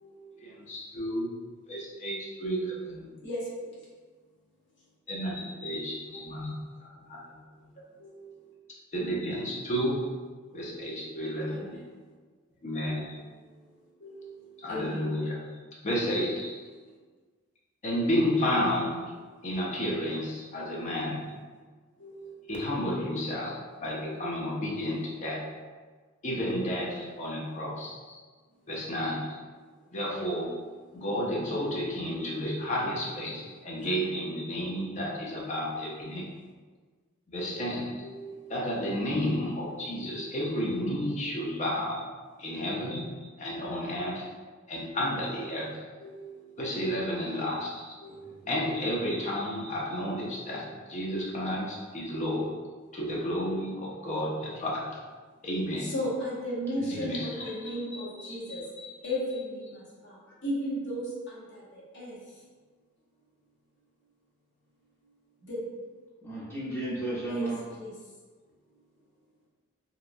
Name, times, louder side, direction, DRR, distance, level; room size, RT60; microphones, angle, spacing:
voice 1, 0.4-1.3 1.7-3.2 5.1-7.7 8.9-10.0 10.5-11.8 12.6-13.2 14.6-15.5 15.8-16.6 17.8-19.1 19.4-21.2 22.5-25.4 26.2-28.2 28.7-29.4 29.9-30.5 30.9-36.3 37.3-38.1 38.5-42.0 42.4-44.3 44.7-45.7 46.6-48.0 48.5-52.5 52.9-55.0 55.4-55.9 56.9-58.9, equal, 35° left, -3 dB, 0.5 m, -32 dB
voice 2, 3.2-3.7 6.0-6.3 8.0-8.2 10.5-10.7 11.5-11.7 14.0-14.3 14.7-15.0 22.0-22.3 24.0-24.2 26.5-26.7 30.0-30.4 32.1-32.3 38.0-38.6 40.0-40.3 42.5-42.6 46.0-46.4 48.0-48.3 50.5-50.6 51.0-51.1 52.8-52.9 55.8-58.6 59.0-60.2 60.4-62.2 65.5-65.6 67.3-67.5 67.8-67.9, equal, 55° left, -7 dB, 1.0 m, -36 dB
voice 3, 48.1-48.5 56.8-57.1 66.2-67.6, right 1 dB, 10° left, -10 dB, 0.9 m, -35 dB
2.9 x 2.3 x 2.5 m, 1.4 s
head